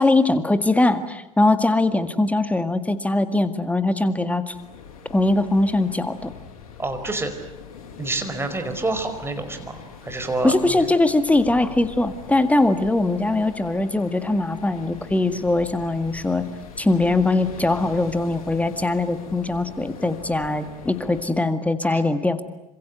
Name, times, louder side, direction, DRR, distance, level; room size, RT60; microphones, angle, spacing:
voice 1, 0.0-4.5 5.1-6.3 10.4-16.4 16.8-22.4, left 2 dB, 5° left, 11 dB, 2.0 m, -21 dB
sound 1, 4.5-21.2, left 7 dB, 65° left, 6.4 m, -42 dB
voice 2, 6.8-7.3 8.0-10.8 21.9-22.0, right 2 dB, 15° right, 7 dB, 5.0 m, -28 dB
27.5 x 26.0 x 8.0 m, 0.92 s
figure-of-eight pair, 70°, 19 cm